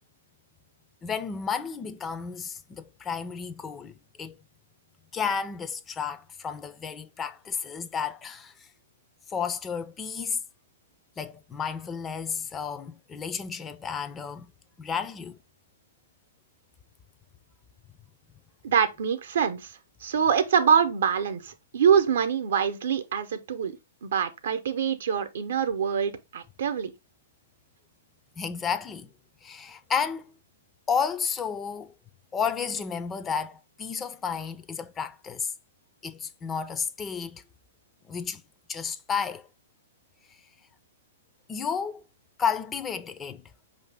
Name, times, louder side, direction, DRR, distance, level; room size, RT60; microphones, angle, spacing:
voice 1, 1.0-4.4 5.1-8.7 9.3-10.4 11.2-14.5 14.8-15.4 28.4-29.1 29.4-30.3 30.9-31.9 32.3-35.5 36.0-37.4 38.1-38.4 38.7-39.5 41.5-42.0 42.4-43.4, left 6 dB, 20° left, 0.4 m, -32 dB
voice 2, 18.6-19.7 20.0-23.7 24.0-26.9, right 7 dB, 70° right, 0.7 m, -25 dB
5.2 x 2.6 x 3.4 m
hypercardioid pair, 120°, 0 cm